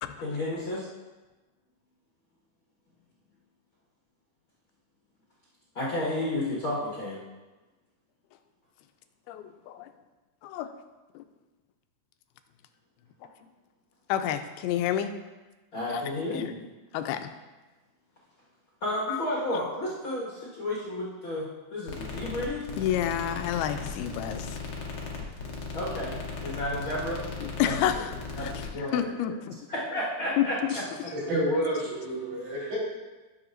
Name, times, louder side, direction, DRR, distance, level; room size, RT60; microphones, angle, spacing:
voice 1, 0.2-0.9 5.7-7.2 15.7-16.6 18.8-22.6 25.7-27.2 27.6-28.0 28.3-29.4 29.7-31.1 32.6-32.7, left 1 dB, 50° left, -7 dB, 1.6 m, -32 dB
voice 2, 9.3-9.9 10.4-10.7 11.2-11.3 14.1-15.1 15.9-16.0 16.3-16.5 16.9-17.3 19.1-19.2 19.5-19.6 22.8-24.6 27.4-29.6 30.4-30.7 31.3-31.6, left 10 dB, 85° left, 8 dB, 2.5 m, -30 dB
sound 1, 21.9-28.7, left 4 dB, 70° left, 1.4 m, -37 dB
voice 3, 31.1-32.8, right 1 dB, 80° right, -7 dB, 5.3 m, -29 dB
14.0 x 6.8 x 2.6 m, 1.2 s
omnidirectional pair, 4.4 m